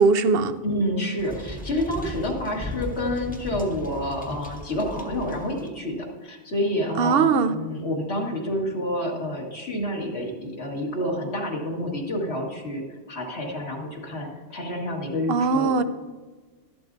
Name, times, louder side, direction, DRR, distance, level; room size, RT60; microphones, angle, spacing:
voice 1, 0.0-0.6 7.0-7.5 15.3-15.8, right 5 dB, 60° right, 0.8 m, -20 dB
voice 2, 0.6-12.8 13.1-15.7, left 1 dB, 65° left, 2.1 m, -28 dB
sound 1, 1.2-5.7, left 1 dB, 10° left, 1.0 m, -37 dB
13.0 x 12.0 x 2.6 m
omnidirectional pair, 1.2 m